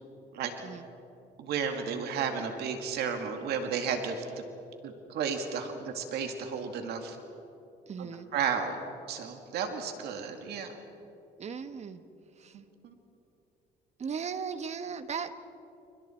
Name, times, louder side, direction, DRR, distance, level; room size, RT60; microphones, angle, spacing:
voice 1, 1.4-4.2 4.8-7.2 8.0-8.8 9.1-10.8 12.5-12.9, right 6 dB, 75° right, 5 dB, 2.3 m, -33 dB
voice 2, 7.9-8.3 11.4-12.0 12.4-12.6 14.0-15.3, right 6 dB, 40° right, 10 dB, 1.4 m, -37 dB
29.5 x 29.0 x 4.5 m, 2.8 s
cardioid pair, 110°, 17 cm